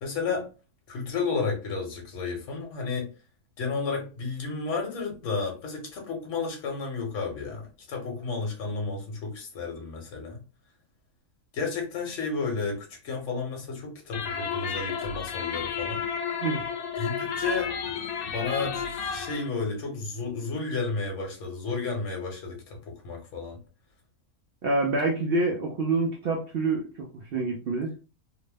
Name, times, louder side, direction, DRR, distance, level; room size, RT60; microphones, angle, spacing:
voice 1, 0.0-0.5 0.9-3.1 3.6-10.4 11.5-16.1 17.0-17.7 18.2-23.6, left 4 dB, 55° left, 1.2 m, -32 dB
sound 1, 14.1-19.5, left 7 dB, 80° left, 1.1 m, -32 dB
voice 2, 24.6-27.9, right 3 dB, 75° right, 0.5 m, -27 dB
2.9 x 2.0 x 3.3 m
omnidirectional pair, 1.6 m